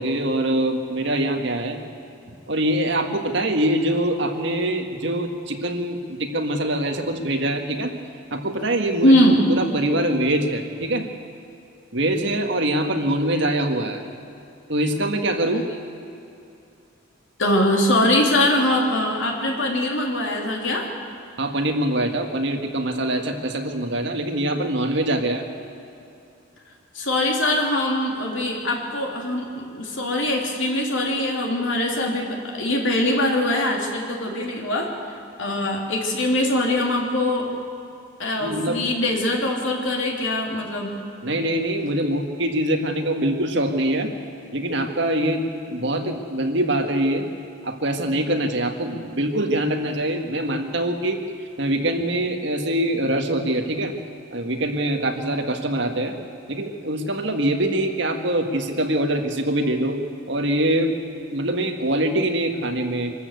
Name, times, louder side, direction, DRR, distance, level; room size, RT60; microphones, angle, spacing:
voice 1, 0.0-1.8 2.5-7.9 8.3-9.1 9.5-11.1 11.9-14.0 14.7-15.6 21.4-25.4 38.4-38.8 41.2-44.1 44.5-47.2 47.6-51.2 51.6-53.9 54.3-56.1 56.5-60.0 60.3-60.9 61.3-63.1, right 1 dB, 60° right, 4 dB, 1.8 m, -24 dB
voice 2, 9.0-9.4 17.4-20.9 26.9-37.5 38.2-40.9, left 1 dB, 70° left, 0 dB, 3.2 m, -22 dB
24.5 x 13.5 x 8.2 m, 2.7 s
head